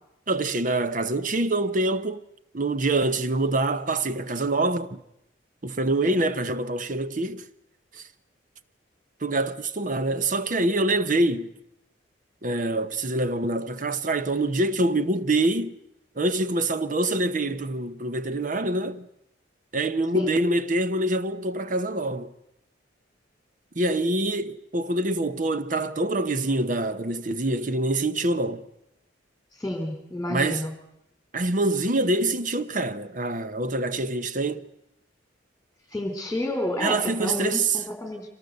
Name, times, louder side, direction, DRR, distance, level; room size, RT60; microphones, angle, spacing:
voice 1, 0.3-2.2 2.5-5.0 5.6-7.4 7.9-8.0 9.2-11.5 12.4-15.8 16.2-19.1 19.7-22.3 23.8-28.6 30.3-30.6 31.3-34.7 36.8-37.8, right 2 dB, 40° right, 0.9 m, -25 dB
voice 2, 29.5-30.7 35.9-38.3, left 1 dB, 5° left, 3.0 m, -30 dB
25.5 x 18.5 x 7.9 m
head